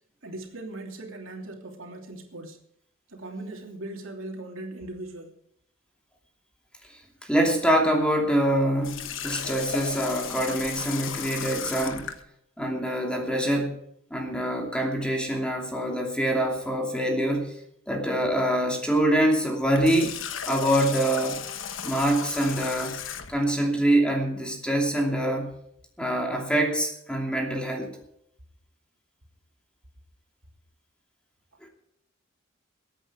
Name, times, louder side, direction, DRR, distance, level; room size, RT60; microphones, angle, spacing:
voice 1, 0.2-2.6 3.1-5.3, right 2 dB, 80° right, 2 dB, 2.9 m, -39 dB
voice 2, 7.2-12.1 12.6-13.8 14.1-17.5 17.9-20.2 20.4-21.4 21.8-23.0 23.3-25.5 26.0-27.9, right 1 dB, 5° left, 1 dB, 2.7 m, -25 dB
Water tap faucet, 8.8-12.2 19.6-23.5, left 7 dB, 70° left, 1.2 m, -35 dB
21.0 x 8.9 x 4.8 m, 0.73 s
head